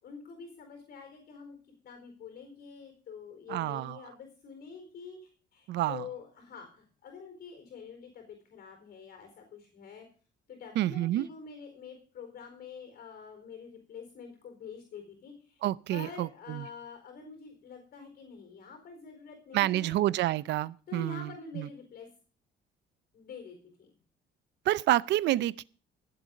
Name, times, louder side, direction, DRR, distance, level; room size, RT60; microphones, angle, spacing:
voice 1, 0.0-1.6 1.8-10.1 10.5-15.6 15.9-20.0 20.9-22.1 23.1-24.0, left 6 dB, 55° left, 4.4 m, -46 dB
voice 2, 3.5-4.0 5.7-6.0 10.8-11.3 15.6-16.6 19.5-21.3 21.6-21.7 24.7-25.6, right 15 dB, 70° right, 0.6 m, -28 dB
16.0 x 8.0 x 5.2 m
cardioid pair, 110°, 19 cm